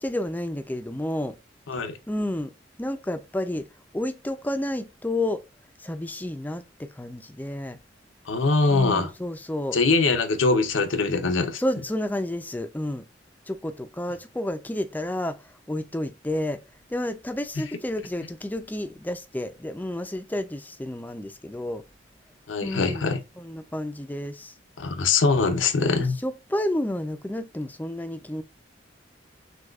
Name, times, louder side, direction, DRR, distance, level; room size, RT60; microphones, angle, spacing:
voice 1, 0.0-1.4 2.1-2.5 2.8-3.7 3.9-5.4 5.8-7.8 8.7-9.8 11.6-13.0 13.5-15.4 15.7-16.6 16.9-21.8 22.6-24.5 25.8-28.4, left 1 dB, 10° left, 0.4 m, -30 dB
voice 2, 8.3-9.1 9.7-11.6 22.5-23.2 24.8-26.2, left 3 dB, 80° left, 0.8 m, -22 dB
6.3 x 2.3 x 2.3 m
head